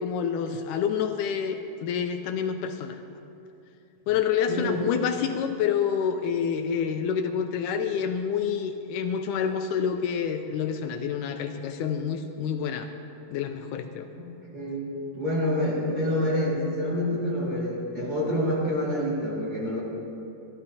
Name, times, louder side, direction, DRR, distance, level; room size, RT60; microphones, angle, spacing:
voice 1, 0.0-3.0 4.1-12.9 13.3-14.1, left 7 dB, 80° left, 6 dB, 2.0 m, -28 dB
voice 2, 4.5-4.8 14.2-19.8, left 1 dB, 30° right, -6 dB, 2.3 m, -27 dB
25.5 x 12.5 x 2.8 m, 2.8 s
omnidirectional pair, 3.8 m